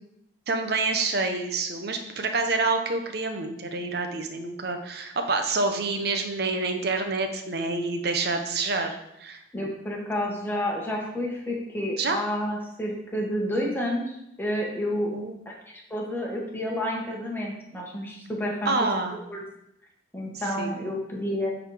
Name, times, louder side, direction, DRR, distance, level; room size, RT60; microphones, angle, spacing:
voice 1, 0.5-9.7 12.0-12.2 15.1-15.4 18.6-19.2 20.6-20.7, right 3 dB, 55° right, 5 dB, 0.9 m, -27 dB
voice 2, 9.5-15.1 15.4-15.5 15.9-18.7 19.3-19.4 20.1-21.5, left 1 dB, 10° left, -2 dB, 1.4 m, -30 dB
8.6 x 4.2 x 4.8 m, 0.81 s
head